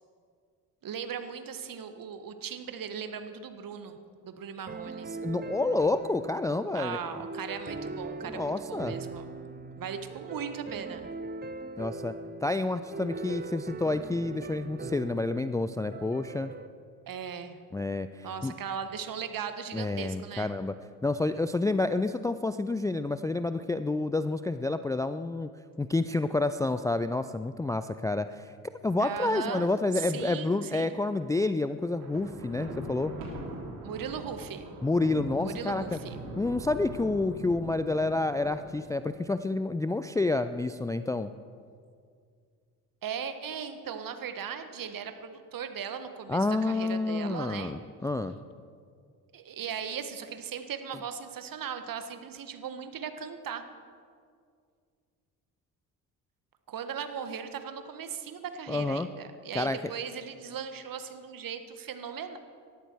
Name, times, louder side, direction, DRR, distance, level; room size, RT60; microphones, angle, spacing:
voice 1, 0.8-4.0 4.2-5.1 6.7-9.4 9.8-11.1 17.1-17.6 18.2-20.5 29.0-30.9 33.8-34.8 35.4-36.2 43.0-47.7 49.3-53.6 56.7-62.4, right 7 dB, 45° right, 8 dB, 1.6 m, -38 dB
sound 1, 4.7-16.7, right 3 dB, 20° right, 0.9 m, -40 dB
voice 2, 5.2-7.0 8.3-8.9 11.8-12.1 12.4-16.5 17.7-18.5 19.7-20.8 21.0-25.5 25.8-28.5 28.8-33.1 34.8-36.0 36.4-41.3 46.3-48.3 58.7-59.1 59.5-59.8, left 2 dB, 10° left, 11 dB, 0.4 m, -29 dB
Thunder, 31.8-39.1, right 1 dB, 75° right, 3.6 m, -42 dB
19.0 x 13.0 x 4.7 m, 2.2 s
hypercardioid pair, 55°, 46 cm